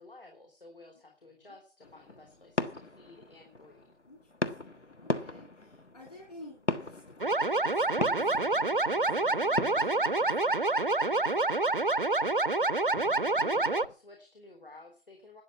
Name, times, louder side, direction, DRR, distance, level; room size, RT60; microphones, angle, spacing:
voice 1, 0.0-3.9 13.4-15.4, left 2 dB, 50° left, 3 dB, 3.5 m, -52 dB
sound 1, 1.8-13.9, left 2 dB, 85° left, 1.6 m, -39 dB
voice 2, 4.0-12.0, left 1 dB, 35° left, 0 dB, 3.3 m, -53 dB
sound 2, 7.2-13.9, right 2 dB, 50° right, 0.6 m, -27 dB
12.5 x 8.8 x 8.4 m, 0.43 s
figure-of-eight pair, 170°, 35 cm